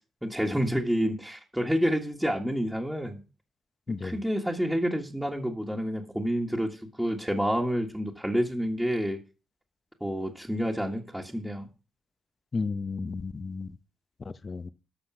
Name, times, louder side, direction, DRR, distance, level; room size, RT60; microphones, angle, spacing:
voice 1, 0.2-3.2 3.9-9.2 10.0-11.7, equal, ahead, 1.6 m, -29 dB
voice 2, 12.5-13.7 14.2-14.7, left 4 dB, 35° left, 0.7 m, -33 dB
11.5 x 6.2 x 6.2 m
cardioid pair, 90°, 0 cm